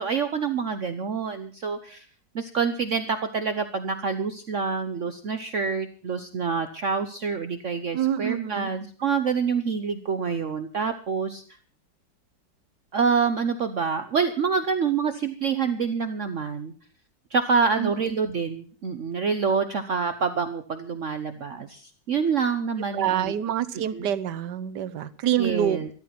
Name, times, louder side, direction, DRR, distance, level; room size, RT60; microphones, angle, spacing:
voice 1, 0.0-2.0 2.3-11.4 12.9-16.7 17.3-23.3 23.7-24.1 25.4-25.9, right 5 dB, 50° right, 8 dB, 1.1 m, -27 dB
voice 2, 7.9-8.7 17.8-17.9 22.9-25.8, right 10 dB, 75° right, 13 dB, 1.5 m, -26 dB
13.5 x 13.0 x 5.9 m, 0.42 s
omnidirectional pair, 1.9 m